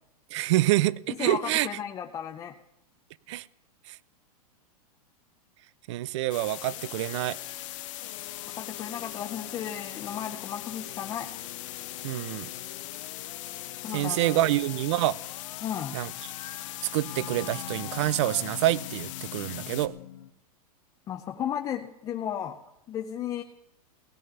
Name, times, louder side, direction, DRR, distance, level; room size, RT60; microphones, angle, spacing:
voice 1, 0.3-1.7 3.3-3.5 3.9-4.0 5.9-7.4 12.0-12.5 13.9-15.2 15.9-16.1 16.9-19.9, right 15 dB, 45° right, 0.5 m, -27 dB
voice 2, 1.2-2.5 8.5-11.3 13.8-14.4 15.6-16.0 21.1-22.6 22.9-23.4, left 9 dB, 20° left, 0.6 m, -34 dB
sound 1, 6.3-19.9, left 15 dB, 50° left, 1.1 m, -40 dB
sound 2, 6.7-20.3, left 12 dB, 70° left, 1.0 m, -45 dB
17.0 x 10.5 x 6.9 m
supercardioid pair, 155°, 20 cm